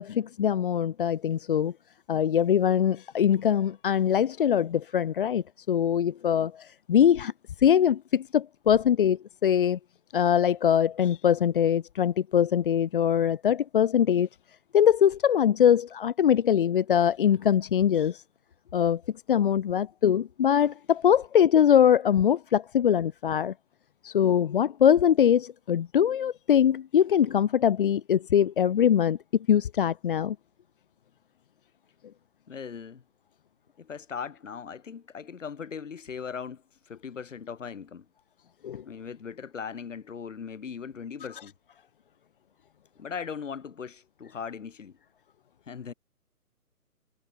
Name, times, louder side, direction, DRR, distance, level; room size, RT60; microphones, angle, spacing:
voice 1, 0.0-1.7 2.1-7.3 7.6-9.8 10.1-14.3 14.7-18.2 18.7-19.0 19.3-23.5 24.0-29.2 29.5-30.4 38.6-38.8, left 9 dB, 35° left, 2.2 m, -22 dB
voice 2, 32.5-33.0 33.8-38.1 38.8-41.5 43.0-45.0 45.7-45.9, left 6 dB, 55° left, 6.4 m, -39 dB
figure-of-eight pair, 155°, 46 cm